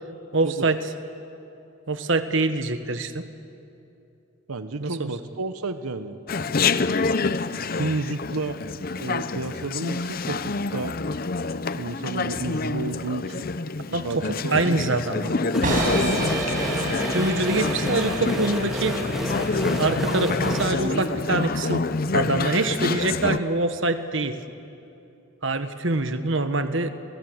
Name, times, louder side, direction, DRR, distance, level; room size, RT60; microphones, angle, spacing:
voice 1, 0.3-0.9 1.9-3.3 4.8-5.1 13.9-15.3 15.6-16.4 17.1-19.0 19.7-24.4 25.4-26.9, right 2 dB, 60° right, 9 dB, 1.3 m, -25 dB
voice 2, 4.5-6.2 7.7-8.6 9.0-11.0 11.8-13.5 14.0-15.0, right 3 dB, 90° right, 10 dB, 1.1 m, -31 dB
Chatter, 6.3-23.4, left 3 dB, 40° left, 0.6 m, -27 dB
sound 1, 15.5-20.7, left 1 dB, ahead, 2.7 m, -30 dB
sound 2, 15.6-21.6, right 2 dB, 40° right, 6.2 m, -31 dB
30.0 x 24.5 x 8.0 m, 2.8 s
head